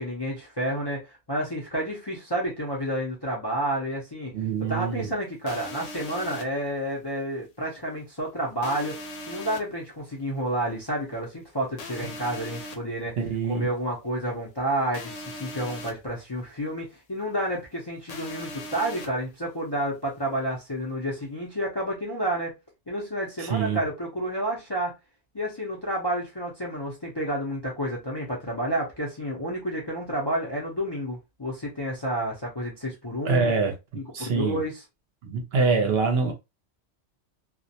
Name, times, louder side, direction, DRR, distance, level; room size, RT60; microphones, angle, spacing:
voice 1, 0.0-4.3 4.7-9.0 9.3-13.2 13.5-22.6 22.9-24.9 25.3-33.5 33.9-34.8, right 1 dB, 30° left, 0.5 m, -30 dB
voice 2, 4.3-5.1 13.2-13.7 23.4-23.8 33.2-33.7 34.1-34.6 35.2-36.3, right 4 dB, 60° right, 0.8 m, -25 dB
sound 1, 5.5-6.4 8.6-9.6 11.8-12.8 14.9-15.9 18.1-19.1, left 1 dB, 80° left, 1.0 m, -39 dB
2.4 x 2.1 x 2.6 m
omnidirectional pair, 1.2 m